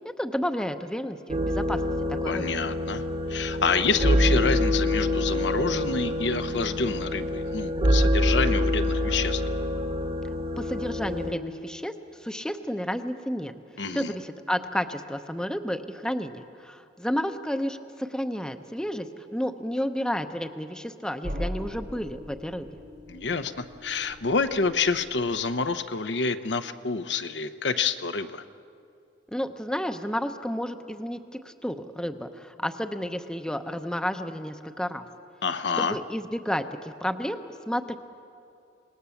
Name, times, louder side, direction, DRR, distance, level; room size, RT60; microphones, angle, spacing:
voice 1, 0.2-1.8 2.2-2.5 10.6-13.5 13.9-19.1 19.3-22.7 29.3-31.2 31.4-35.1 35.8-38.0, equal, 5° left, 7 dB, 0.7 m, -31 dB
sound 1, 1.3-11.3, left 1 dB, 30° right, 1.3 m, -26 dB
voice 2, 2.2-3.0 3.3-9.4 13.8-14.1 23.1-28.4 35.4-36.0, left 4 dB, 75° left, 9 dB, 0.8 m, -28 dB
sound 2, 21.2-25.9, equal, 75° right, 5.3 m, -39 dB
26.5 x 19.5 x 7.1 m, 2.5 s
head